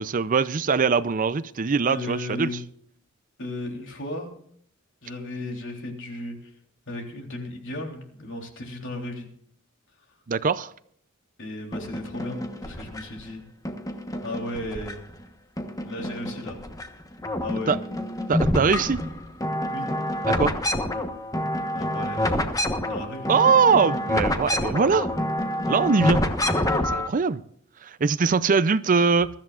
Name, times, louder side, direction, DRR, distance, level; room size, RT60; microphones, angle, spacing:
voice 1, 0.0-2.5 10.3-10.7 17.7-17.8 18.3-19.0 20.3-20.5 23.3-25.1 25.7-26.2 26.8-27.4 27.8-29.4, right 5 dB, 40° right, 0.5 m, -22 dB
voice 2, 1.9-2.6 3.4-4.3 5.0-6.5 6.9-9.3 11.4-13.4 14.2-15.0 15.8-16.6 17.4-17.8 19.7-19.9 21.7-22.4 22.9-23.3, left 1 dB, 60° left, 3.5 m, -35 dB
sound 1, 11.7-13.2 13.7-15.2 15.6-16.9 17.1-27.1, left 1 dB, 15° left, 1.2 m, -27 dB
22.5 x 13.5 x 2.5 m
head